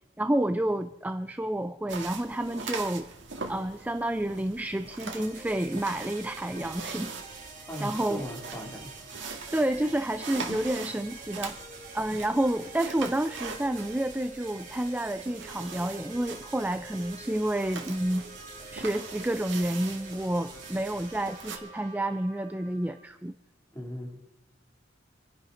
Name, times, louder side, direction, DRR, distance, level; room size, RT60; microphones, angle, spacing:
voice 1, 0.2-3.1 3.5-7.1 7.8-8.2 9.5-11.6 11.9-18.2 18.7-23.3, right 1 dB, 10° right, 8 dB, 0.4 m, -29 dB
sound 1, 1.9-21.6, right 4 dB, 65° right, 1.9 m, -42 dB
sound 2, 5.1-23.1, right 4 dB, 45° right, 4.1 m, -46 dB
voice 2, 7.7-8.9 23.7-24.3, equal, 15° left, 0 dB, 2.8 m, -38 dB
27.0 x 10.5 x 3.9 m, 0.98 s
head